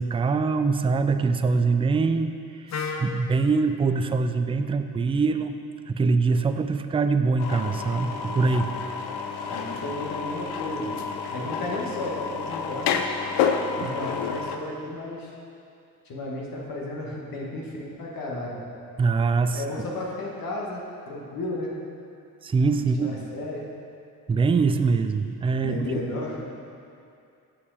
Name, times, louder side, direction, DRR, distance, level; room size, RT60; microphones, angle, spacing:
voice 1, 0.0-2.3 3.0-5.5 5.9-8.7 13.8-13.9 19.0-19.6 22.4-23.1 24.3-25.8, right 4 dB, 15° right, 9 dB, 0.3 m, -23 dB
Wind instrument woodwind instrument, 2.7-6.6, left 5 dB, 45° left, 0.8 m, -39 dB
sound 1, 7.4-14.6, left 6 dB, 80° left, 0.6 m, -29 dB
voice 2, 9.5-10.9 11.3-13.1 13.8-15.3 16.0-18.6 19.5-21.7 23.0-23.6 25.6-26.4, left 1 dB, 60° left, -3 dB, 1.6 m, -33 dB
6.5 x 5.6 x 5.0 m, 2.5 s
supercardioid pair, 65°, 38 cm